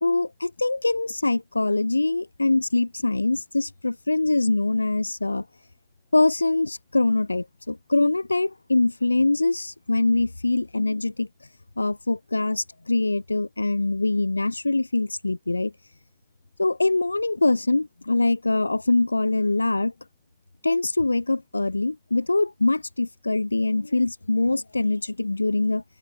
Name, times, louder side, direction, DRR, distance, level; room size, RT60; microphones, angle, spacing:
voice 1, 0.0-5.4 6.1-11.3 11.8-15.7 16.6-19.9 20.6-25.8, left 2 dB, 80° left, 2.9 m, -23 dB
figure-of-eight pair, 90°, 0 cm